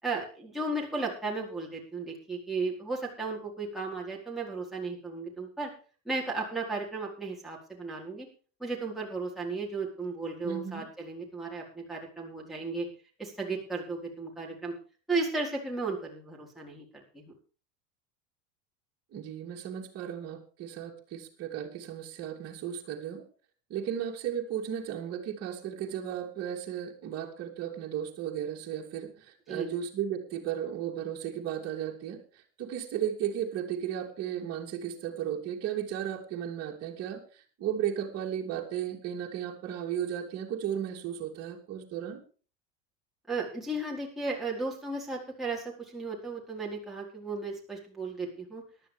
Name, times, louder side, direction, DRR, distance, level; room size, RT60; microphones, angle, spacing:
voice 1, 0.0-5.7 6.0-8.3 8.6-12.9 13.2-14.7 15.1-17.3 29.5-29.7 43.3-48.6, right 3 dB, ahead, -4 dB, 4.3 m, -35 dB
voice 2, 10.4-10.8 19.1-23.2 23.7-32.2 32.6-42.2, right 9 dB, 40° right, -2 dB, 2.9 m, -35 dB
18.5 x 12.0 x 3.5 m, 0.38 s
supercardioid pair, 125°, 40 cm